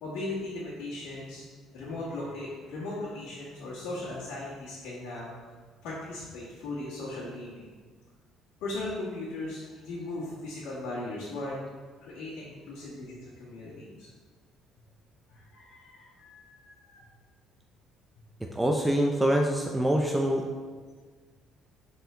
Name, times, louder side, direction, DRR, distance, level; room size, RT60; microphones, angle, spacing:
voice 1, 0.0-1.4 1.7-5.3 5.8-7.7 8.6-11.6 12.0-14.1 15.3-17.1, left 2 dB, 90° left, -9 dB, 1.8 m, -38 dB
voice 2, 18.6-20.4, right 1 dB, 5° right, 1 dB, 0.4 m, -25 dB
6.8 x 4.2 x 3.9 m, 1.5 s
cardioid pair, 165°, 0 cm